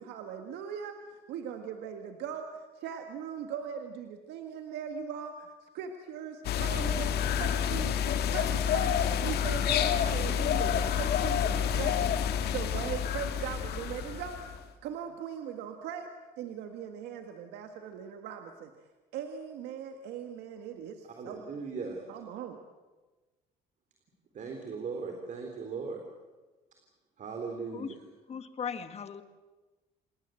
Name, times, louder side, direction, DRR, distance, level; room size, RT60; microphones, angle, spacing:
voice 1, 0.0-16.1 16.4-18.7 19.1-21.5 22.1-22.6, right 8 dB, 85° right, 5 dB, 1.8 m, -40 dB
sound 1, 6.4-14.6, left 8 dB, 75° left, 1.8 m, -29 dB
voice 2, 21.2-22.0 24.3-26.0 27.2-28.0, right 4 dB, 50° right, 3 dB, 3.8 m, -38 dB
voice 3, 28.3-29.2, left 7 dB, 40° left, 10 dB, 1.9 m, -37 dB
28.0 x 19.0 x 7.8 m, 1.2 s
cardioid pair, 110°, 17 cm